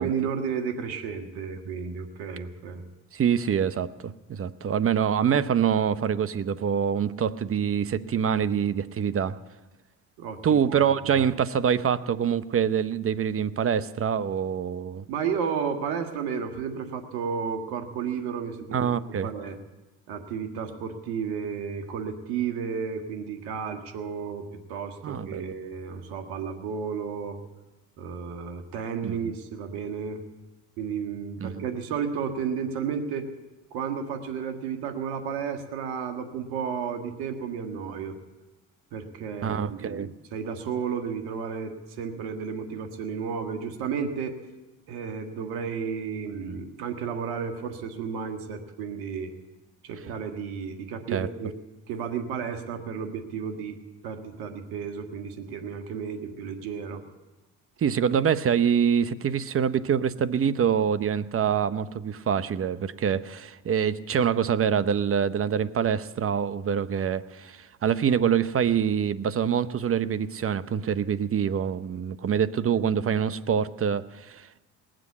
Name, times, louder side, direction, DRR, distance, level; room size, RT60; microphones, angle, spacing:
voice 1, 0.0-2.8 10.2-10.8 11.0-11.2 15.1-18.9 19.2-19.6 20.1-27.4 28.0-30.2 30.8-33.2 33.7-38.1 38.9-44.4 44.9-49.3 49.8-51.5 51.9-53.8 54.0-57.0, right 6 dB, 75° right, 6 dB, 1.7 m, -32 dB
voice 2, 3.1-9.4 10.4-15.0 18.7-19.3 25.0-25.5 29.0-29.3 31.4-31.6 39.4-40.1 51.1-51.3 57.8-74.6, right 8 dB, 40° right, 15 dB, 0.8 m, -25 dB
19.5 x 7.7 x 8.4 m, 1.1 s
supercardioid pair, 70°, 36 cm